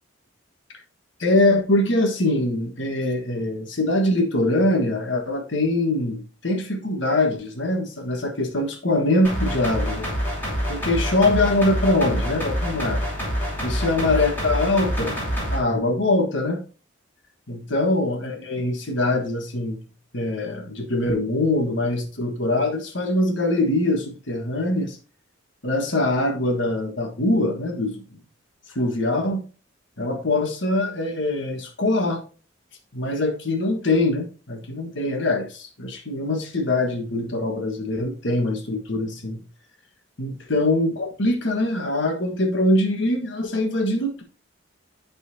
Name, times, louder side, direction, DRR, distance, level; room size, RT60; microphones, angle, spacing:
voice 1, 1.2-10.1 10.7-13.0 13.6-15.2 15.5-16.6 17.5-19.8 20.1-25.0 25.6-28.0 28.7-29.4 30.0-32.2 32.9-39.4 40.2-44.2, left 2 dB, 65° left, 1.5 m, -23 dB
sound 1, 9.2-15.6, equal, 10° left, 2.8 m, -26 dB
11.5 x 4.2 x 2.7 m
head